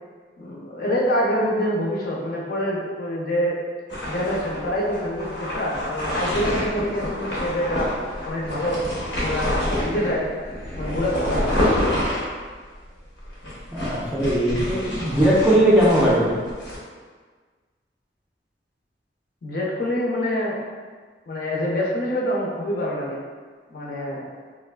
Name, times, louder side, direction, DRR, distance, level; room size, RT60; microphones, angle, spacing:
voice 1, 0.4-3.6 4.1-7.9 8.2-8.8 9.2-9.5 9.8-10.3 10.7-11.5 19.4-20.6 21.3-23.2 23.7-24.2, equal, 55° left, -3 dB, 0.5 m, -26 dB
sound 1, 3.9-16.8, left 1 dB, 85° left, 0.8 m, -27 dB
voice 2, 13.7-16.4, right 1 dB, 5° right, -6 dB, 0.3 m, -19 dB
3.2 x 2.4 x 2.2 m, 1.5 s
head